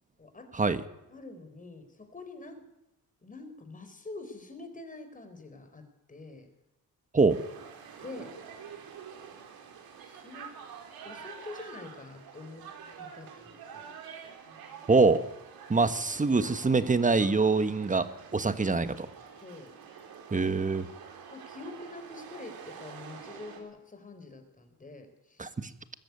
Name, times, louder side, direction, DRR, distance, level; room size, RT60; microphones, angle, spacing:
voice 1, 0.2-0.5 1.1-2.6 3.2-6.5 8.0-8.3 10.1-10.5 11.0-12.7 13.0-13.8 19.4-19.7 21.3-25.6, left 3 dB, 20° left, 7 dB, 4.2 m, -46 dB
sound 1, 7.3-23.6, right 7 dB, 85° right, 4.3 m, -47 dB
voice 2, 14.9-15.2 15.7-18.1 18.3-19.1 20.3-20.9 25.4-25.5, right 4 dB, 20° right, 11 dB, 1.5 m, -24 dB
22.0 x 13.5 x 9.6 m, 0.92 s
cardioid pair, 110°, 35 cm